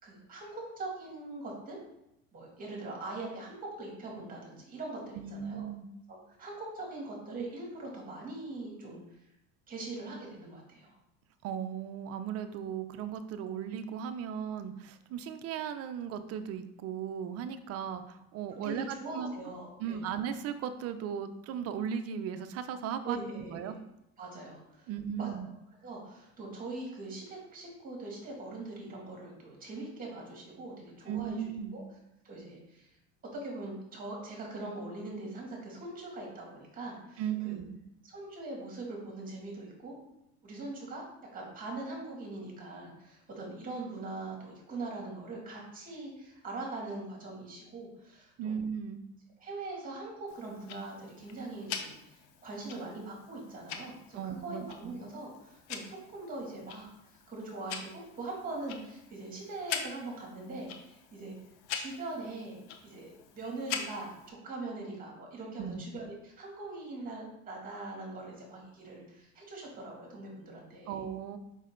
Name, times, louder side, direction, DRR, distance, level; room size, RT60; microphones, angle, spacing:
voice 1, 0.0-1.8 2.3-5.6 6.4-9.0 9.7-10.9 18.6-20.1 23.0-23.8 24.2-24.9 25.2-25.5 25.8-31.8 32.2-32.9 33.3-37.6 38.0-40.0 40.4-41.0 41.3-48.6 49.4-61.4 61.7-71.0, right 2 dB, 25° right, -1 dB, 2.5 m, -42 dB
voice 2, 5.1-5.9 11.4-19.3 19.8-23.8 24.9-25.5 31.1-31.8 37.2-37.6 48.4-49.0 54.1-55.0 65.6-65.8 70.9-71.4, right 8 dB, 45° right, 9 dB, 0.7 m, -37 dB
Tick-tock, 50.3-64.3, left 7 dB, 90° left, 1.0 m, -44 dB
6.3 x 5.4 x 3.9 m, 0.82 s
cardioid pair, 130°, 33 cm